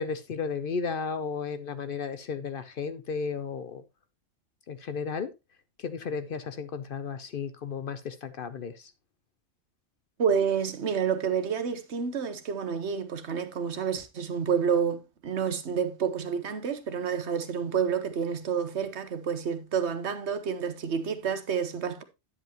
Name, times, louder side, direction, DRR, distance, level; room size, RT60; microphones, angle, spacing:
voice 1, 0.0-3.8 4.7-5.3 5.8-8.9, left 5 dB, 55° left, 0.7 m, -34 dB
voice 2, 10.2-22.0, right 7 dB, 65° right, 1.2 m, -29 dB
9.6 x 8.0 x 2.9 m
omnidirectional pair, 1.2 m